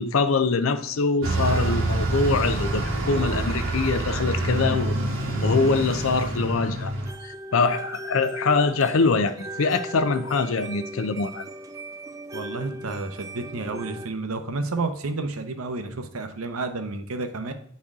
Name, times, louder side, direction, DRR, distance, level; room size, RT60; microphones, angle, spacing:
voice 1, 0.0-4.9 5.4-6.9 7.2-11.4, left 4 dB, 70° left, 0.5 m, -24 dB
Bus, 1.2-7.1, right 2 dB, 70° right, 1.3 m, -26 dB
sound 1, 7.1-14.1, right 1 dB, 15° right, 0.3 m, -38 dB
voice 2, 12.3-17.5, right 3 dB, 85° right, 0.8 m, -30 dB
8.5 x 4.2 x 3.6 m
head